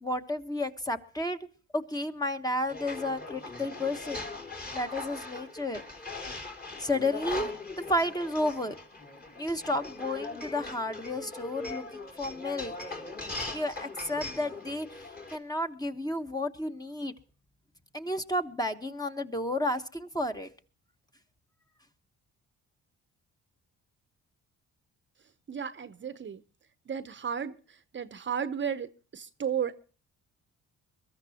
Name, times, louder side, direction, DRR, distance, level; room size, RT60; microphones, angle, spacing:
voice 1, 0.0-1.4 1.7-4.3 4.7-5.8 6.7-8.7 9.4-11.8 12.2-12.9 13.5-15.0 15.3-17.1 17.9-20.5, left 1 dB, 10° left, 1.2 m, -32 dB
sound 1, 2.7-15.4, left 3 dB, 30° left, 3.1 m, -40 dB
voice 2, 25.5-26.4 26.9-27.6 27.9-29.8, right 7 dB, 40° right, 0.8 m, -33 dB
23.0 x 13.5 x 2.9 m
cardioid pair, 90°, 30 cm